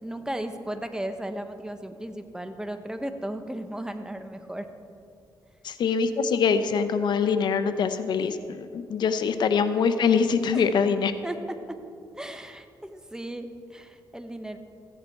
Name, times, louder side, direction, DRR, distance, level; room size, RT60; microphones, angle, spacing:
voice 1, 0.0-4.7 10.5-10.7 11.2-11.4 12.1-14.6, right 1 dB, 10° right, 7 dB, 0.9 m, -35 dB
voice 2, 5.6-11.1, left 6 dB, 75° left, 10 dB, 0.7 m, -24 dB
15.5 x 10.0 x 4.4 m, 2.5 s
cardioid pair, 85°, 8 cm